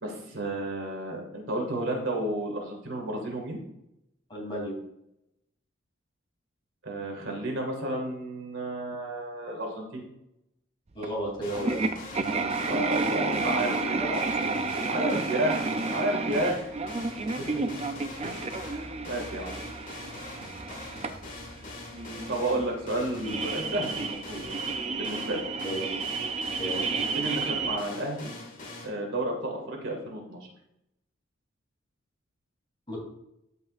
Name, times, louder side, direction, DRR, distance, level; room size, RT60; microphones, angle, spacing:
voice 1, 0.0-3.6 6.8-10.0 12.3-14.0 14.8-15.6 15.9-16.7 17.3-17.4 18.2-19.5 21.9-24.5 24.9-25.4 27.1-28.3 28.8-30.4, right 1 dB, 70° right, 0 dB, 2.2 m, -32 dB
voice 2, 4.3-4.7 10.9-11.9 13.9-15.2 17.4-17.6 25.6-26.0 26.6-26.9 32.9-33.0, equal, 25° left, -4 dB, 3.2 m, -34 dB
sound 1, 11.0-11.1 11.5-27.8, right 3 dB, 30° right, 0.5 m, -31 dB
sound 2, 11.4-28.9, left 2 dB, 40° left, 2.2 m, -43 dB
13.5 x 5.4 x 2.6 m, 0.82 s
head